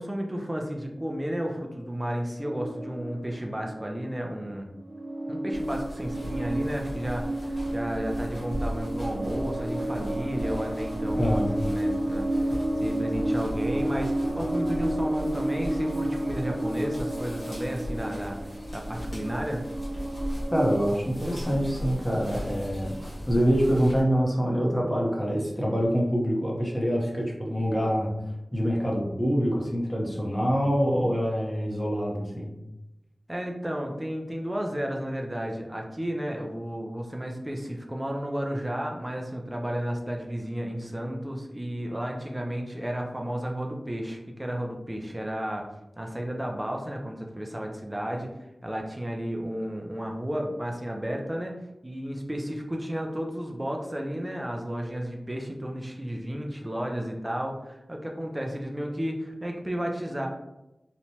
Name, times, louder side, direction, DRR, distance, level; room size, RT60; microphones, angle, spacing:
voice 1, 0.0-4.7 5.3-18.4 18.7-19.6 33.3-45.7 46.0-48.3 48.6-51.6 51.8-60.3, equal, 20° right, 1 dB, 0.4 m, -33 dB
sound 1, 2.4-4.3 4.8-20.8, right 1 dB, 60° right, 0.7 m, -31 dB
sound 2, 5.5-24.0, equal, 65° left, 1.1 m, -38 dB
voice 2, 11.2-11.5 20.5-28.1 28.5-32.5, equal, 15° left, -3 dB, 0.8 m, -25 dB
2.9 x 2.2 x 2.7 m, 0.94 s
wide cardioid pair, 70°, 0 cm